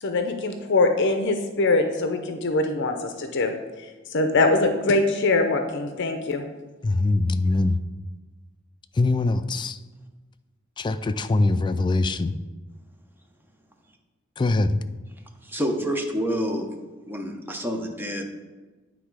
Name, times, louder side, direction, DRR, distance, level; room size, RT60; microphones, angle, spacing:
voice 1, 0.0-3.5 4.1-6.4, left 2 dB, 60° left, 6 dB, 0.6 m, -23 dB
voice 2, 6.8-7.8 8.9-9.8 10.8-12.3 14.4-14.8, left 2 dB, 20° left, 10 dB, 0.3 m, -22 dB
voice 3, 15.4-16.7 17.1-18.3, equal, 10° right, 3 dB, 0.8 m, -28 dB
9.4 x 3.6 x 4.7 m, 1.3 s
head